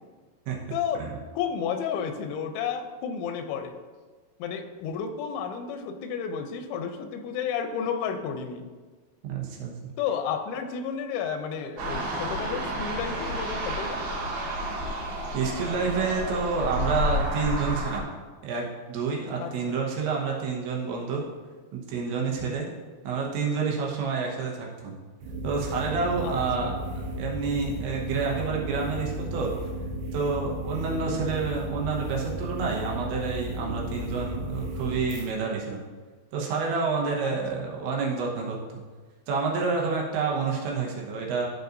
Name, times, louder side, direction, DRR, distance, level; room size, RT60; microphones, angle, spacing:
voice 1, 0.7-1.1 1.4-3.8 4.4-8.7 10.0-14.0 19.4-19.8 22.4-22.7 26.2-26.8 30.9-31.0 37.2-37.4, left 7 dB, 90° left, 7 dB, 3.0 m, -32 dB
voice 2, 9.2-9.7 15.3-18.1 18.4-21.2 21.7-22.7 23.1-25.0 25.4-26.8 27.2-29.5 30.1-35.8 36.3-38.8 39.3-41.5, right 4 dB, 90° right, -2 dB, 3.5 m, -29 dB
sound 1, 11.8-18.0, equal, 55° right, 3.5 m, -30 dB
sound 2, 25.2-35.3, right 1 dB, 70° right, 2.8 m, -34 dB
12.5 x 5.3 x 2.6 m, 1.4 s
omnidirectional pair, 5.1 m